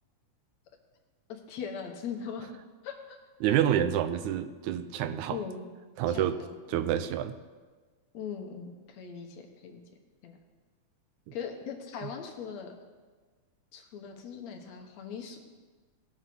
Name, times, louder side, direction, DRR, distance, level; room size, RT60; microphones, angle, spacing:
voice 1, 1.3-2.6 2.8-3.2 5.3-5.6 6.1-6.8 8.1-9.8 10.2-10.4 11.3-12.7 13.7-15.4, left 6 dB, 70° left, 3 dB, 2.4 m, -40 dB
voice 2, 3.4-5.4 6.0-6.4 6.7-7.4 11.3-11.4, right 10 dB, 85° right, 11 dB, 2.0 m, -28 dB
18.5 x 6.7 x 6.1 m, 1.4 s
omnidirectional pair, 3.4 m